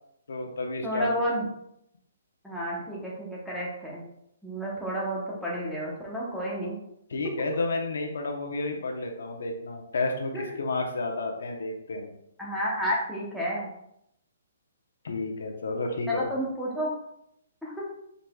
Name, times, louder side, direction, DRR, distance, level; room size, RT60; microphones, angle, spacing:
voice 1, 0.3-1.1 7.1-12.1 15.0-16.4, left 3 dB, 75° left, 2 dB, 0.8 m, -31 dB
voice 2, 0.8-1.5 2.4-4.0 4.4-6.8 10.3-10.6 12.4-13.7 16.1-16.9 17.6-17.8, equal, ahead, -6 dB, 0.8 m, -31 dB
4.7 x 4.0 x 2.3 m, 0.78 s
hypercardioid pair, 165°, 0 cm